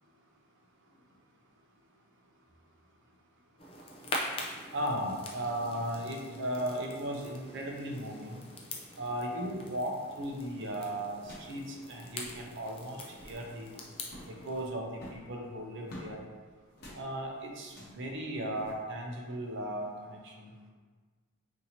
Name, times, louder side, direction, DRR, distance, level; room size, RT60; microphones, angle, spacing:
sound 1, 3.6-14.7, left 1 dB, 25° left, 0.4 m, -44 dB
voice 1, 4.7-8.4 9.0-13.7 14.3-16.2 16.9-20.5, right 1 dB, 55° right, 1 dB, 0.6 m, -36 dB
sound 2, 11.2-11.6 11.9-12.0 12.1-12.5 13.0-13.4 14.0-14.4 14.9-16.1 16.7-17.0 17.6-18.0 18.6-18.7, equal, 45° left, 0.9 m, -49 dB
4.1 x 2.7 x 2.7 m, 1.4 s
head